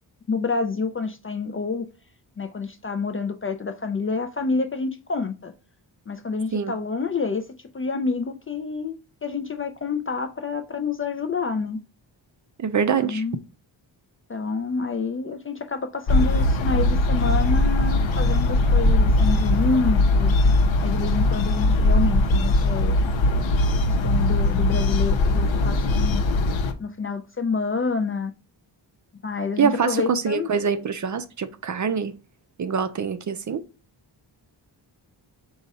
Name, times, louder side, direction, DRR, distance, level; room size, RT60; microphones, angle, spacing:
voice 1, 0.3-1.9 2.4-5.5 6.1-7.5 7.7-8.9 9.2-11.8 13.0-13.4 14.3-20.3 20.8-23.6 23.8-26.2 26.8-28.3 29.2-30.5, left 4 dB, 30° left, 0.4 m, -28 dB
voice 2, 12.6-13.2 29.6-32.1 32.6-33.6, right 6 dB, 40° right, 0.5 m, -24 dB
sound 1, 16.1-26.7, left 2 dB, 85° left, 0.7 m, -20 dB
5.2 x 2.4 x 4.0 m
wide cardioid pair, 130°, 45 cm